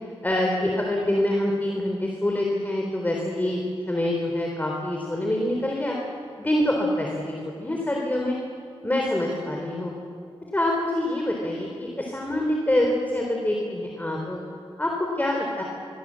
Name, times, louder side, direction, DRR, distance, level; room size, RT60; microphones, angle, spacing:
voice 1, 0.2-6.0 6.4-8.4 8.8-9.9 10.5-14.4 14.8-14.9 15.2-15.6, left 1 dB, 20° left, 0 dB, 3.7 m, -25 dB
26.0 x 23.5 x 7.6 m, 2.3 s
wide cardioid pair, 100°, 10 cm